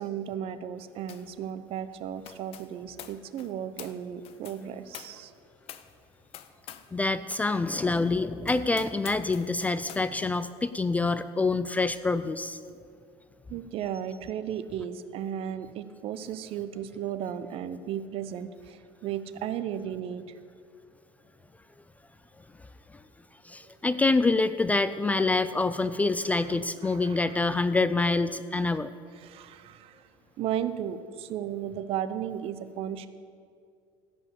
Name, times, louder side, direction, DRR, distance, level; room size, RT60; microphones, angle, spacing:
voice 1, 0.0-5.3 13.5-20.4 26.4-27.4 28.6-28.8 29.1-30.1 30.4-33.1, right 9 dB, 50° right, 13 dB, 0.7 m, -35 dB
sound 1, 1.1-1.4 1.6-7.0 7.3-7.5 8.0-8.1 8.4-10.1, left 11 dB, 50° left, 0.7 m, -47 dB
voice 2, 6.9-12.6 23.5-28.9, left 3 dB, 10° left, 13 dB, 0.3 m, -26 dB
15.5 x 5.3 x 8.3 m, 2.3 s
cardioid pair, 130°, 12 cm